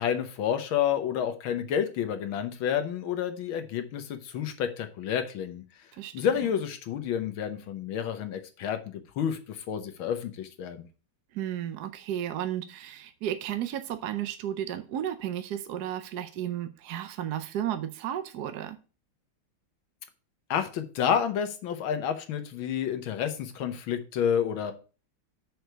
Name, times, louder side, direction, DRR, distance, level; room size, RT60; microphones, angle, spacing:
voice 1, 0.0-5.6 6.1-10.9 20.5-24.7, left 8 dB, 75° left, 1.8 m, -29 dB
voice 2, 11.3-18.8, right 11 dB, 65° right, 1.0 m, -33 dB
6.5 x 4.6 x 6.6 m
omnidirectional pair, 2.3 m